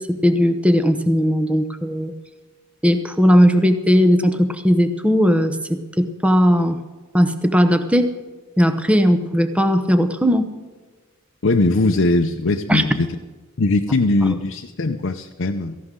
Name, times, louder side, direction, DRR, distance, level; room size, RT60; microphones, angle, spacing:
voice 1, 0.0-2.1 2.8-6.8 7.1-8.1 8.6-10.5 12.7-12.8, equal, 5° right, 9 dB, 0.8 m, -17 dB
voice 2, 11.4-13.1 13.6-15.8, left 2 dB, 60° left, 4 dB, 0.7 m, -20 dB
17.5 x 15.0 x 3.8 m, 1.3 s
head